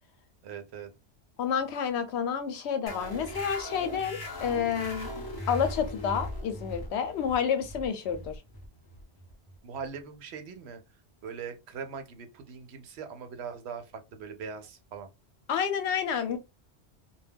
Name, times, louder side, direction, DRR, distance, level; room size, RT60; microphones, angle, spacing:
voice 1, 0.4-0.9 9.6-10.8 11.2-13.8 14.1-15.1, right 6 dB, 80° right, 0.9 m, -41 dB
voice 2, 1.4-8.3 15.5-16.4, left 7 dB, 80° left, 0.9 m, -29 dB
sound 1, 2.9-10.0, left 1 dB, 25° left, 0.6 m, -39 dB
2.2 x 2.2 x 3.3 m
omnidirectional pair, 1.1 m